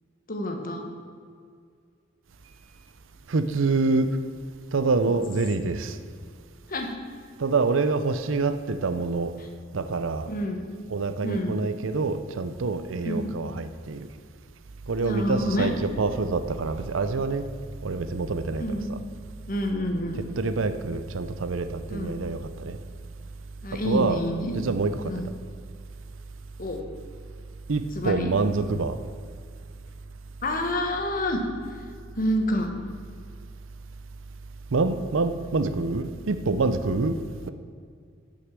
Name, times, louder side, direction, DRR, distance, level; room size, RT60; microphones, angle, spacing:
voice 1, 0.3-0.8 6.7-6.9 10.3-10.6 11.2-11.6 13.0-13.3 15.0-15.7 18.6-18.9 19.5-20.2 21.9-22.2 23.6-24.5 25.0-25.3 26.6-26.8 27.9-28.3 30.4-31.4 32.2-32.7, equal, 45° left, 3 dB, 1.4 m, -28 dB
voice 2, 3.3-4.2 4.7-6.0 7.4-9.3 9.7-10.3 10.9-14.1 14.9-17.4 17.8-19.0 20.2-22.8 23.7-24.2 24.5-25.1 27.7-29.0 34.7-37.2, right 3 dB, 85° right, 11 dB, 0.6 m, -26 dB
9.2 x 6.5 x 7.5 m, 2.1 s
head